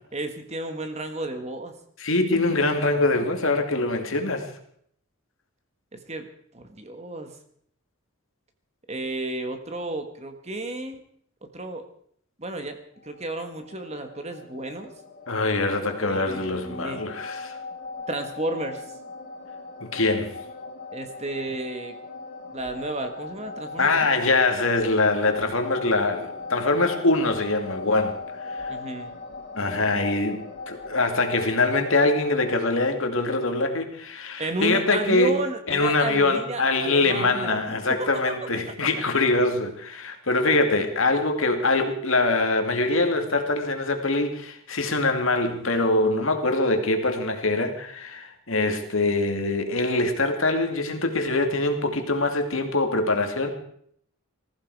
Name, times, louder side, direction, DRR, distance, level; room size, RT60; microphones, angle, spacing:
voice 1, 0.1-1.7 5.9-6.3 6.5-7.3 8.9-11.0 11.5-11.8 12.4-14.9 16.0-17.0 18.1-18.8 20.9-22.0 22.5-23.9 28.7-29.1 34.4-38.2, right 2 dB, 30° right, 1.7 m, -32 dB
voice 2, 2.0-4.5 15.3-17.6 19.8-20.4 23.8-28.1 28.4-28.7 29.6-35.4 35.7-53.5, left 2 dB, 65° left, 2.4 m, -23 dB
sound 1, 13.1-32.6, left 3 dB, 45° left, 3.5 m, -39 dB
20.0 x 15.0 x 4.8 m
head